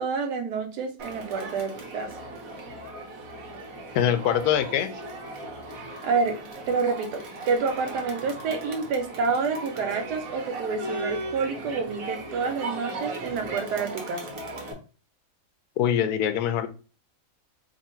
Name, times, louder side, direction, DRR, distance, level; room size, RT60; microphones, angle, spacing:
voice 1, 0.0-2.1 6.0-6.4 6.7-14.2, right 5 dB, 80° right, 5 dB, 1.3 m, -28 dB
Crowd, 1.0-14.7, right 2 dB, 60° right, 1.2 m, -37 dB
voice 2, 3.9-4.9 15.8-16.7, left 9 dB, 75° left, 10 dB, 1.0 m, -23 dB
3.0 x 2.5 x 4.3 m, 0.35 s
omnidirectional pair, 1.8 m